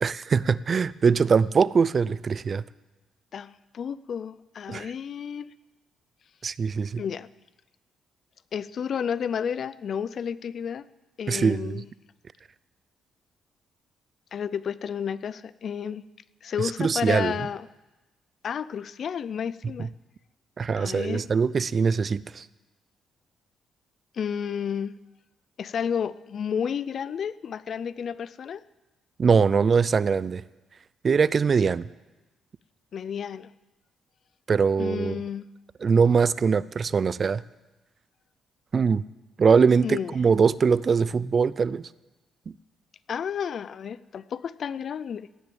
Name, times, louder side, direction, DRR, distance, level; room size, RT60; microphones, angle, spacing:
voice 1, 0.0-2.6 4.7-4.9 6.4-7.0 11.3-11.8 16.6-17.3 19.8-19.9 20.6-22.5 29.2-30.4 31.0-31.9 34.5-35.2 35.8-37.4 38.7-39.0 39.4-41.9 42.5-42.6, right 5 dB, 40° right, 19 dB, 0.4 m, -22 dB
voice 2, 3.3-5.5 7.0-7.3 8.5-10.8 11.2-11.9 14.3-16.0 16.4-17.7 18.4-19.9 20.8-21.2 24.1-25.0 25.6-28.6 32.9-33.5 34.8-35.5 39.8-40.1 43.1-45.3, left 7 dB, 55° left, 18 dB, 0.4 m, -31 dB
17.0 x 6.7 x 9.1 m, 1.1 s
cardioid pair, 90°, 0 cm